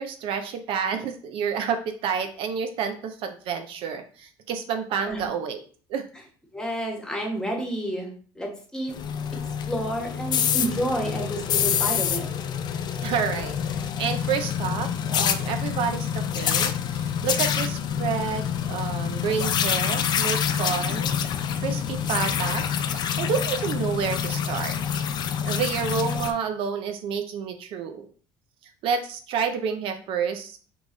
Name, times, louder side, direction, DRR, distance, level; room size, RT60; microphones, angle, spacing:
voice 1, 0.0-5.6 5.9-6.1 13.0-21.2 21.6-24.8 25.4-28.1 28.8-30.6, right 7 dB, 65° right, 7 dB, 0.5 m, -29 dB
voice 2, 6.5-8.9 9.6-12.3, right 1 dB, 5° left, 1 dB, 1.3 m, -30 dB
sound 1, 8.9-26.3, left 8 dB, 45° left, 0.4 m, -27 dB
3.8 x 3.0 x 3.8 m, 0.43 s
supercardioid pair, 100°, 10 cm